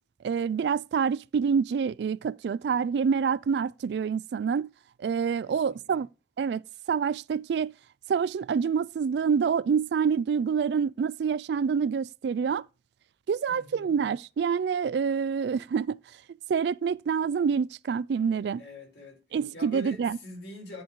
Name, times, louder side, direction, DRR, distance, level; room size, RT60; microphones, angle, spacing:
voice 1, 0.2-4.7 5.0-6.1 6.4-6.6 6.9-7.7 8.1-12.6 13.3-16.0 16.5-18.6 19.3-20.2, right 6 dB, 70° right, 0.3 m, -27 dB
voice 2, 5.5-6.1 13.5-14.0 18.6-19.2 19.5-20.8, left 1 dB, 75° left, 4.0 m, -44 dB
10.0 x 3.9 x 4.6 m
head